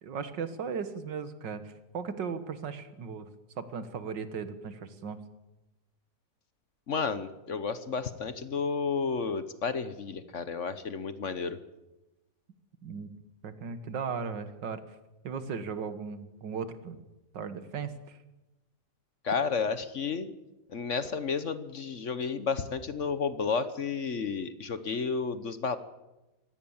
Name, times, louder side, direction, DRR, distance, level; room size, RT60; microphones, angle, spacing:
voice 1, 0.0-3.3 3.6-5.2 12.8-13.1 13.4-14.8 15.2-17.0 17.3-18.2, right 6 dB, 90° right, 11 dB, 2.1 m, -37 dB
voice 2, 6.9-11.6 19.2-20.3 20.7-25.8, left 5 dB, 50° left, 12 dB, 1.2 m, -32 dB
24.0 x 17.5 x 7.2 m, 1.0 s
omnidirectional pair, 1.9 m